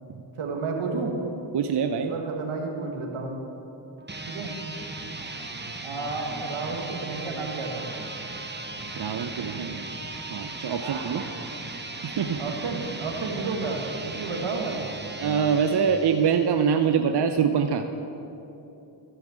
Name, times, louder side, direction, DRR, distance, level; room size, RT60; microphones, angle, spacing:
voice 1, 0.4-1.2 2.1-3.4 4.3-4.5 5.8-7.9 10.8-11.3 12.4-14.8, right 4 dB, 80° right, 2 dB, 1.6 m, -31 dB
voice 2, 1.5-2.1 8.9-9.8 10.3-11.2 12.0-12.4 15.2-17.9, right 7 dB, 55° right, 7 dB, 0.7 m, -24 dB
sound 1, 4.0-16.8, right 2 dB, 20° right, 1.1 m, -37 dB
14.5 x 5.8 x 7.5 m, 3.0 s
cardioid pair, 40°, 48 cm